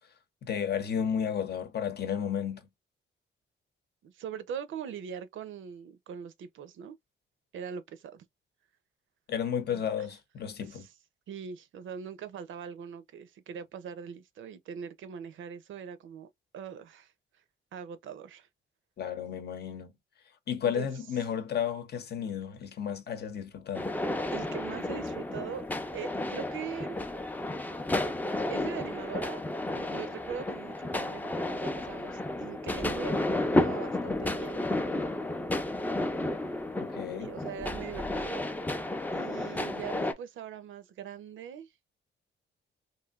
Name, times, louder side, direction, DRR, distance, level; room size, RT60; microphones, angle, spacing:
voice 1, 0.4-2.6 9.3-10.9 19.0-19.9 20.5-23.9 36.8-37.3, left 8 dB, 55° left, 0.8 m, -32 dB
voice 2, 4.0-7.0 7.5-8.2 9.7-10.1 10.6-10.9 11.3-16.3 16.5-17.1 17.7-18.5 20.6-20.9 24.3-25.7 25.9-27.0 28.5-29.4 29.7-34.6 37.1-38.4 39.1-41.7, right 8 dB, 85° right, 0.6 m, -41 dB
sound 1, 23.7-40.1, left 1 dB, 10° left, 0.4 m, -32 dB
3.2 x 2.6 x 2.4 m
wide cardioid pair, 140°, 20 cm